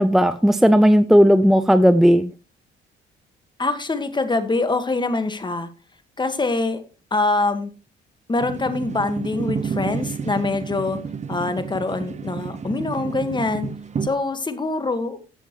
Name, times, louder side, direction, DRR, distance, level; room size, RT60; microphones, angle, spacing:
voice 1, 0.0-2.3, equal, ahead, 11 dB, 0.6 m, -15 dB
voice 2, 3.6-5.7 6.2-6.8 7.1-7.7 8.3-11.0 11.3-13.7 14.0-15.2, left 3 dB, 20° left, 9 dB, 1.7 m, -24 dB
sound 1, 8.4-14.1, right 6 dB, 35° right, 1.0 m, -30 dB
14.5 x 7.6 x 3.1 m, 0.33 s
cardioid pair, 90°, 20 cm